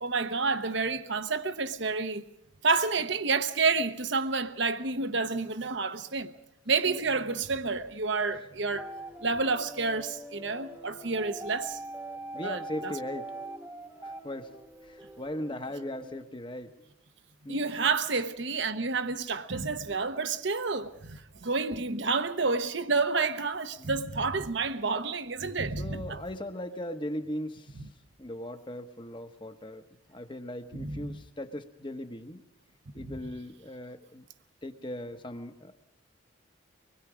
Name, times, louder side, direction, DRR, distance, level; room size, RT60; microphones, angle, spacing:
voice 1, 0.0-2.2 2.6-6.3 6.7-8.9 9.2-11.8 12.4-12.9 17.5-26.2 30.8-31.2 33.0-33.2, right 4 dB, 60° right, 1.0 m, -29 dB
sound 1, 8.7-16.3, right 1 dB, 10° right, 1.2 m, -43 dB
voice 2, 12.3-13.3 14.0-14.5 14.8-16.7 17.4-17.6 18.1-18.2 23.8-23.9 25.8-27.9 28.2-32.4 32.9-34.2 34.6-35.8, left 1 dB, 25° left, 1.1 m, -39 dB
25.0 x 21.0 x 5.0 m
head